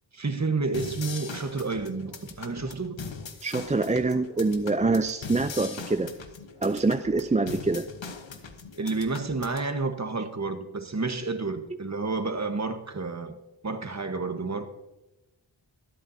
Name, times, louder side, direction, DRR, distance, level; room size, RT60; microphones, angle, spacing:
voice 1, 0.1-3.0 8.8-13.3 13.6-14.7, right 3 dB, 35° right, 1.3 m, -30 dB
sound 1, 0.7-9.7, left 5 dB, 70° left, 1.2 m, -41 dB
voice 2, 3.4-6.1 6.6-7.9, right 3 dB, 15° right, 0.4 m, -25 dB
23.5 x 8.6 x 2.8 m
cardioid pair, 50°, 46 cm